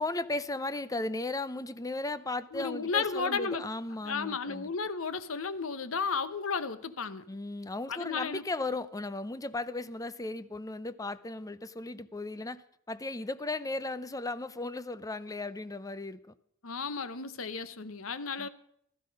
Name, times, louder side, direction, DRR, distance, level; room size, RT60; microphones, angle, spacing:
voice 1, 0.0-4.7 7.3-16.2 18.4-18.5, left 2 dB, 15° left, 0.6 m, -36 dB
voice 2, 2.5-3.6 4.0-7.2 7.9-8.4 16.6-18.5, left 5 dB, 75° left, 1.0 m, -33 dB
16.0 x 13.0 x 5.4 m
head